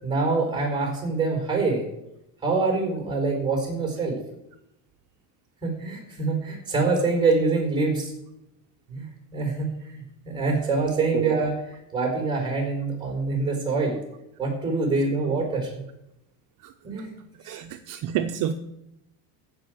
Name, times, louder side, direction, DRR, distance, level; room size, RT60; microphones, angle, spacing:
voice 1, 0.0-1.8 2.4-4.2 5.6-8.1 8.9-11.5 11.9-14.0 14.4-15.7 16.8-17.1 17.4-17.6, right 3 dB, 10° right, 2 dB, 4.6 m, -25 dB
voice 2, 17.4-18.5, right 10 dB, 55° right, 6 dB, 0.8 m, -29 dB
15.0 x 5.6 x 7.8 m, 0.85 s
cardioid pair, 155°, 38 cm